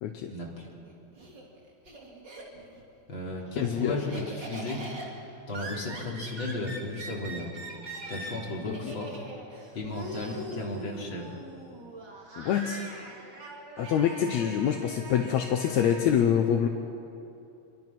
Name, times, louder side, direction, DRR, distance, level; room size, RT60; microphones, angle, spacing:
voice 1, 0.3-0.7 3.1-4.9 5.5-7.6 8.1-9.2 9.7-11.3, left 2 dB, 40° left, -3 dB, 4.3 m, -35 dB
Laughter, 0.7-2.8 3.2-16.1, right 2 dB, 40° right, 3.4 m, -42 dB
voice 2, 3.6-4.1 8.7-8.8 12.4-12.8 13.8-16.7, left 9 dB, 75° left, 5 dB, 2.2 m, -26 dB
27.0 x 23.5 x 6.1 m, 2.7 s
omnidirectional pair, 3.3 m